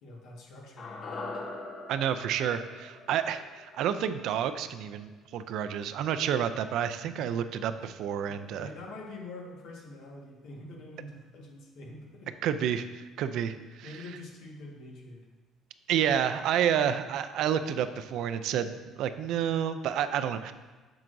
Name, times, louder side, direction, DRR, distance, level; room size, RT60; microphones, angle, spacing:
voice 1, 0.0-1.4 7.0-7.3 7.8-7.9 8.3-12.3 13.4-13.5 13.8-15.3, left 2 dB, 75° left, -1 dB, 1.6 m, -45 dB
sound 1, 0.8-5.1 5.3-5.4, left 3 dB, 50° left, 0.9 m, -43 dB
voice 2, 1.9-8.7 12.4-13.9 15.9-20.5, right 9 dB, 70° right, 11 dB, 0.4 m, -29 dB
7.6 x 7.2 x 2.6 m, 1.3 s
cardioid pair, 110°, 0 cm